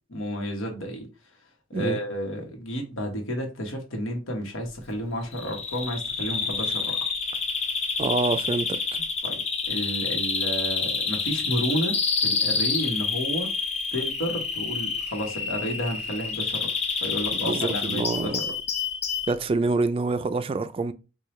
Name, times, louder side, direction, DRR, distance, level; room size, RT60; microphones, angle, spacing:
voice 1, 0.1-1.1 1.7-7.0 9.2-9.4 9.7-13.5 13.9-16.7 17.0-18.4, equal, 75° left, 1.1 m, -31 dB
Bird vocalization bird call bird song, 5.3-19.3, left 5 dB, 35° left, 0.5 m, -28 dB
voice 2, 8.0-8.8 17.4-18.4 19.3-20.9, right 3 dB, 30° right, 0.3 m, -26 dB
4.4 x 2.3 x 3.2 m
head